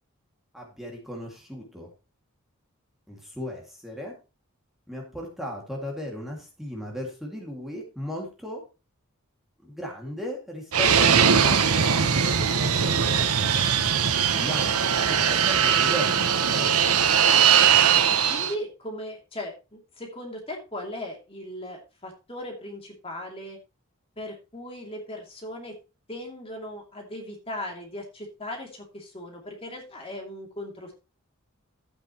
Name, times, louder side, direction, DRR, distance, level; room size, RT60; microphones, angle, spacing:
voice 1, 0.5-1.9 3.1-4.1 4.9-8.6 9.6-13.6 14.3-16.7, left 1 dB, ahead, -1 dB, 2.2 m, -36 dB
Fixed-wing aircraft airplane, 10.7-18.5, right 7 dB, 90° right, 1.0 m, -20 dB
voice 2, 18.1-23.6 24.2-25.7 26.1-30.9, left 1 dB, 25° left, 1 dB, 2.6 m, -38 dB
12.0 x 8.8 x 3.0 m, 0.30 s
head